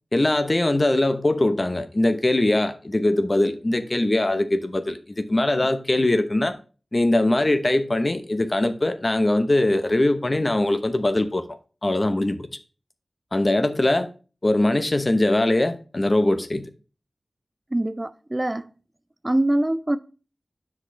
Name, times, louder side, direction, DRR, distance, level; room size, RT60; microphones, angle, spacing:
voice 1, 0.1-6.6 6.9-11.4 11.8-12.5 13.3-14.1 14.4-16.7, left 1 dB, 35° left, 0.9 m, -21 dB
voice 2, 17.7-18.7 19.2-20.0, right 1 dB, 25° right, 0.4 m, -23 dB
7.6 x 6.0 x 3.3 m
wide cardioid pair, 60°, 0 cm